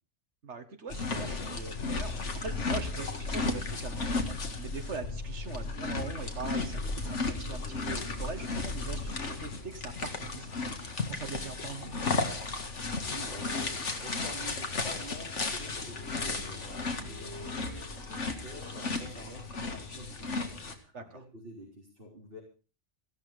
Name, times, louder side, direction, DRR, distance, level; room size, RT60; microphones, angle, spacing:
voice 1, 0.4-12.3 20.9-21.0, right 4 dB, 70° right, 7 dB, 2.0 m, -42 dB
sound 1, 0.9-20.7, left 3 dB, 75° left, 2.1 m, -34 dB
sound 2, 7.6-19.5, equal, 15° left, 4.8 m, -52 dB
voice 2, 12.8-22.4, right 1 dB, 50° right, -3 dB, 4.2 m, -49 dB
15.5 x 12.5 x 5.0 m, 0.37 s
omnidirectional pair, 1.2 m